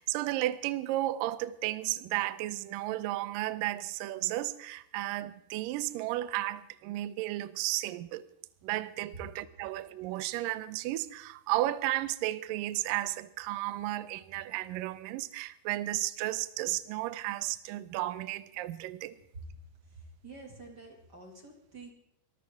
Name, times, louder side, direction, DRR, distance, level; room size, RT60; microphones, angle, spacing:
voice 1, 0.0-8.3 8.6-19.2, right 16 dB, 80° right, 2.0 m, -33 dB
voice 2, 19.8-21.9, right 3 dB, 35° right, 2.0 m, -48 dB
23.5 x 15.5 x 3.6 m
omnidirectional pair, 4.7 m